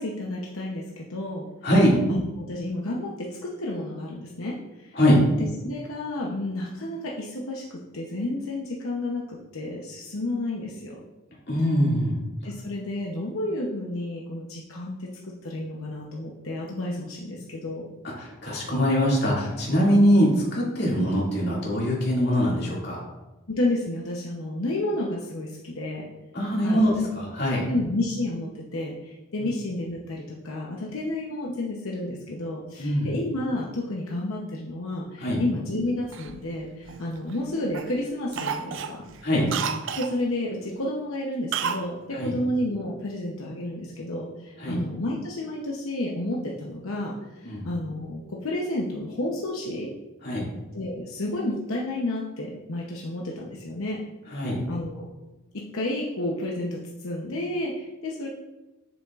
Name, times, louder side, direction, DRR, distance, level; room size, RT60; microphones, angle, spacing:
voice 1, 0.0-1.5 2.1-5.0 5.6-11.0 12.4-15.1 15.4-17.9 23.5-26.1 26.6-27.1 27.7-39.0 40.0-47.1 47.4-49.9 50.7-54.0 54.7-55.1 55.5-58.3, left 1 dB, 80° left, -2 dB, 0.8 m, -31 dB
voice 2, 1.6-2.0 4.9-5.3 11.5-12.2 18.0-23.0 26.3-27.7 29.4-29.5 32.8-33.1 35.2-35.4 39.2-39.5 42.1-42.3 44.6-44.8 47.4-47.7 50.2-50.5 54.3-54.6, equal, 50° left, -5 dB, 2.3 m, -22 dB
Cough, 36.1-37.4 37.7-38.0 38.3-40.2 41.5-41.9 42.2-42.3, right 6 dB, 60° right, 0.4 m, -31 dB
7.1 x 7.1 x 2.4 m, 1.1 s
head